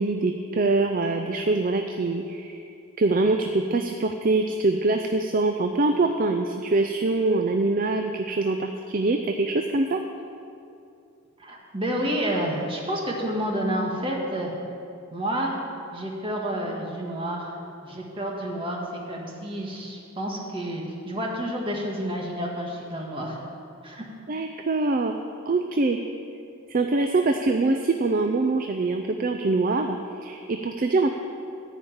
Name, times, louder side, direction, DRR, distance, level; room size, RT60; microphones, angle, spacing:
voice 1, 0.0-2.6 3.0-10.0 24.3-25.2 25.5-26.0 26.7-31.1, right 3 dB, 40° right, 5 dB, 0.4 m, -24 dB
voice 2, 11.4-14.5 15.1-15.6 15.9-17.5 17.8-23.4 23.8-24.0, equal, 25° right, -1 dB, 1.6 m, -29 dB
14.5 x 5.0 x 8.7 m, 2.6 s
head